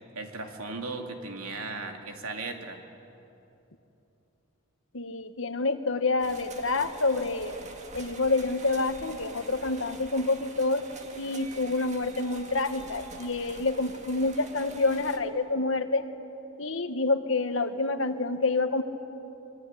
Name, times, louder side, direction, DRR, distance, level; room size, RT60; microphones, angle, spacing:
voice 1, 0.1-2.8, right 3 dB, 85° right, 4 dB, 2.7 m, -37 dB
voice 2, 4.9-7.6 7.9-10.8 11.2-16.1 16.6-18.8, left 3 dB, 60° left, 9 dB, 1.4 m, -28 dB
sound 1, 6.2-15.2, right 2 dB, 35° right, 1.9 m, -46 dB
26.0 x 22.0 x 9.9 m, 3.0 s
head